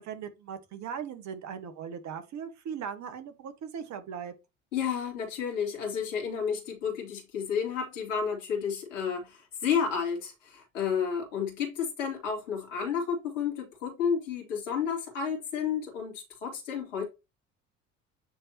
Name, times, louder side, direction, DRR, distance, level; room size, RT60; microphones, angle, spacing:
voice 1, 0.0-4.3, right 7 dB, 45° right, 1.3 m, -39 dB
voice 2, 4.7-17.1, left 7 dB, 75° left, 2.5 m, -31 dB
9.2 x 3.5 x 2.9 m
figure-of-eight pair, 60°, 38 cm